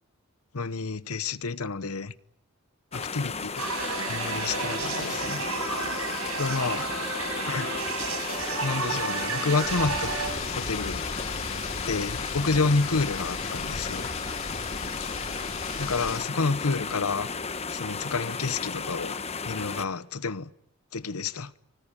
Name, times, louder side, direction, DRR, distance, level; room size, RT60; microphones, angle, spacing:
voice 1, 0.5-2.1 2.9-3.6 4.1-5.5 6.4-6.9 7.5-7.7 8.6-10.1 10.6-11.0 11.9-14.1 15.8-17.3 17.7-19.1 19.4-20.5 20.9-21.5, left 4 dB, 85° left, 1.0 m, -29 dB
sound 1, 2.9-19.9, left 5 dB, 30° left, 1.1 m, -34 dB
sound 2, 3.6-10.3, right 4 dB, 85° right, 7.4 m, -32 dB
sound 3, 9.6-16.2, left 4 dB, 65° left, 5.3 m, -37 dB
24.5 x 24.5 x 9.1 m
head